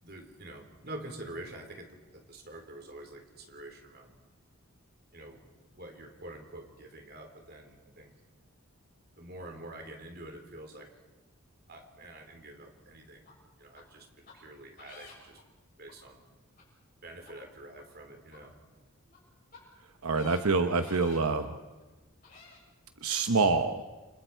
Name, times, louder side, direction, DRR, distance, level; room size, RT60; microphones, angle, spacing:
voice 1, 0.0-4.1 5.1-5.4 5.7-8.1 9.2-11.0 11.7-13.3 13.6-15.4 15.8-16.2 17.0-18.6, right 1 dB, 45° right, 4 dB, 3.4 m, -47 dB
sound 1, 13.3-13.4 13.8-13.9 14.3-14.4 14.8-15.4 15.9-16.0 16.6-16.7 17.2-17.3 17.8-17.9 18.3-18.4 19.1-19.2 19.5-19.6 20.1-20.4 20.8-21.2 21.8-21.9 22.2-22.6 23.1-23.2, left 4 dB, 40° left, 7.5 m, -52 dB
voice 2, 20.0-21.5 23.0-23.8, right 4 dB, 80° right, 8 dB, 1.0 m, -26 dB
29.5 x 25.5 x 4.6 m, 1.2 s
head